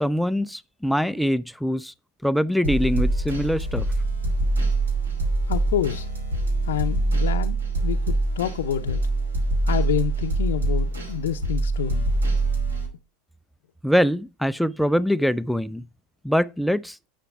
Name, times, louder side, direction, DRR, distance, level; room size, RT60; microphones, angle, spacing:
voice 1, 0.0-1.9 2.2-3.9 13.8-15.9 16.2-17.0, equal, ahead, 0.4 m, -23 dB
sound 1, 2.6-12.9, right 2 dB, 80° right, 2.8 m, -24 dB
voice 2, 5.5-6.1 6.7-9.0 9.7-12.1, left 10 dB, 70° left, 0.6 m, -28 dB
10.0 x 5.9 x 4.7 m
figure-of-eight pair, 85°, 0 cm